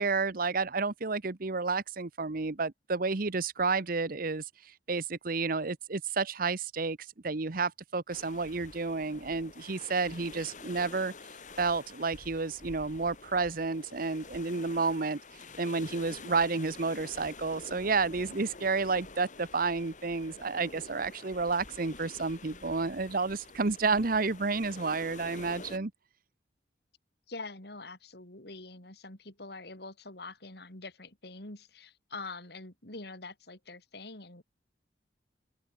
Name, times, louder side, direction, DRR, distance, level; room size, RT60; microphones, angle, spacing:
voice 1, 0.0-4.4 4.9-7.0 7.2-11.1 11.6-15.2 15.6-25.9, right 4 dB, 55° right, 1.0 m, -30 dB
sound 1, 8.1-25.8, left 3 dB, 45° left, 4.5 m, -48 dB
voice 2, 27.3-34.4, left 3 dB, 65° left, 4.2 m, -45 dB
open air
head